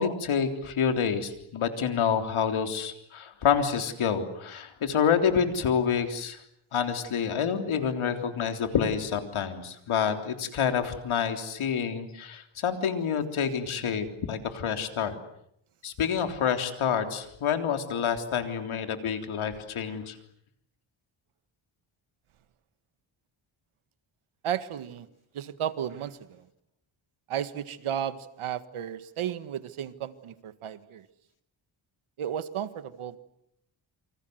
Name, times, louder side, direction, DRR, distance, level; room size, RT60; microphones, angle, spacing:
voice 1, 0.0-6.4 6.7-15.1 15.8-20.2, left 7 dB, 80° left, 7 dB, 3.6 m, -28 dB
voice 2, 24.4-25.1 25.3-26.4 27.3-31.1 32.2-33.2, right 9 dB, 85° right, 13 dB, 1.8 m, -34 dB
28.5 x 25.5 x 8.0 m, 0.74 s
cardioid pair, 105°, 48 cm